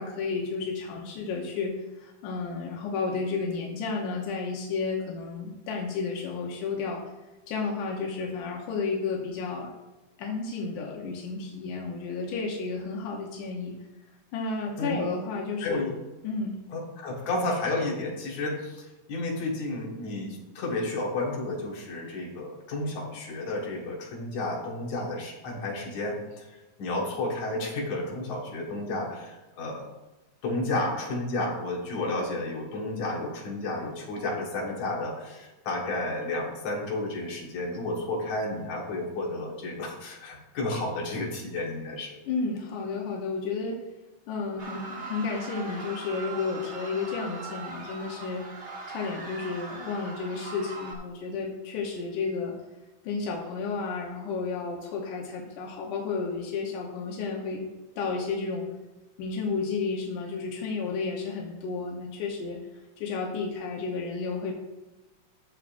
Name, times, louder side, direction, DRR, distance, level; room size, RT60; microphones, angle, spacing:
voice 1, 0.0-7.0 7.5-9.7 10.2-13.8 14.3-15.9 16.2-16.5 42.3-43.8 44.3-48.4 48.9-52.6 53.0-57.7 58.0-58.7 59.2-64.5, left 4 dB, 90° left, -1 dB, 2.6 m, -32 dB
voice 2, 15.6-15.9 16.7-26.5 26.8-29.9 30.4-42.2, left 2 dB, 70° left, -2 dB, 3.1 m, -32 dB
sound 1, 44.6-50.9, right 3 dB, 70° right, 0.6 m, -40 dB
13.5 x 7.4 x 2.6 m, 1.1 s
omnidirectional pair, 3.5 m